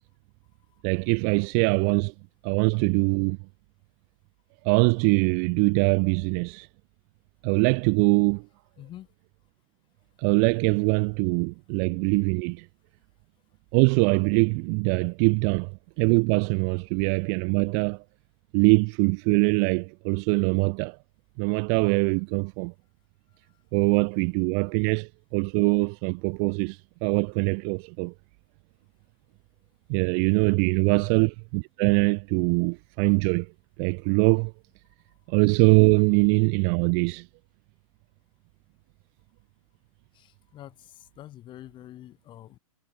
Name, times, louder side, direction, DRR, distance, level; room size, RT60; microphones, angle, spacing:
voice 1, 0.8-2.1 2.4-3.4 4.6-6.7 7.4-8.5 10.2-12.7 13.7-15.7 16.0-18.0 18.5-21.0 21.4-22.7 23.7-28.1 29.9-33.5 33.8-34.5 35.3-37.3, right 40 dB or more, 30° right, 0.4 m, -23 dB
voice 2, 8.8-9.1 30.8-31.1 40.1-42.6, left 13 dB, 25° left, 5.2 m, -46 dB
figure-of-eight pair, 115°, 19 cm